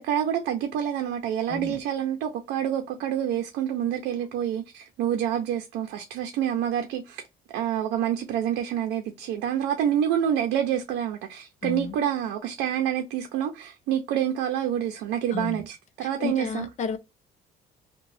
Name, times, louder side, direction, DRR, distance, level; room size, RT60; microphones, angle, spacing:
voice 1, 0.0-7.2 7.5-16.7, right 10 dB, 85° right, 0.5 m, -27 dB
voice 2, 1.5-1.8 11.6-12.0 15.3-15.6 16.2-17.0, left 5 dB, 45° left, 0.6 m, -32 dB
2.9 x 2.2 x 2.6 m
cardioid pair, 110°, 17 cm